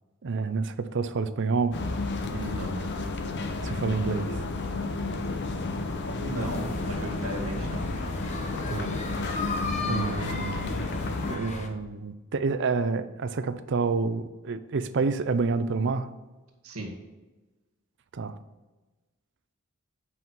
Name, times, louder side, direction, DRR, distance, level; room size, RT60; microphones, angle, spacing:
voice 1, 0.2-1.8 3.6-4.4 8.7-8.9 9.3-9.4 9.8-10.9 11.3-16.1 18.1-18.4, right 4 dB, 55° right, 12 dB, 0.5 m, -28 dB
sound 1, 1.7-11.4, left 3 dB, 55° left, 0.7 m, -32 dB
voice 2, 2.2-2.9 6.2-7.8 16.6-16.9, right 1 dB, 75° right, 0 dB, 1.9 m, -35 dB
sound 2, 6.4-11.7, left 2 dB, 35° left, 1.0 m, -35 dB
7.9 x 5.6 x 4.6 m, 1.2 s
head